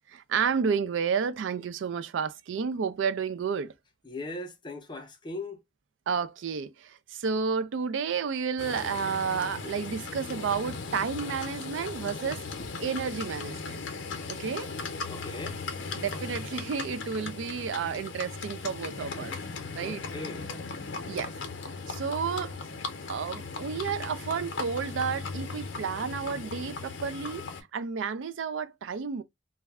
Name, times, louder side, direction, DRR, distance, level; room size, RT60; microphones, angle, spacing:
voice 1, 0.1-3.7 6.1-12.5 12.8-13.8 14.3-14.7 15.9-19.4 19.7-20.0 21.0-21.3 21.9-22.6 23.1-27.4 27.7-29.2, right 6 dB, 75° right, 0.4 m, -31 dB
voice 2, 4.0-5.6 12.6-12.7 15.1-15.6 19.8-20.5, left 2 dB, 25° left, 0.5 m, -39 dB
Livestock farm animals working animals, 8.6-27.6, left 4 dB, 75° left, 0.6 m, -37 dB
2.3 x 2.1 x 3.4 m
head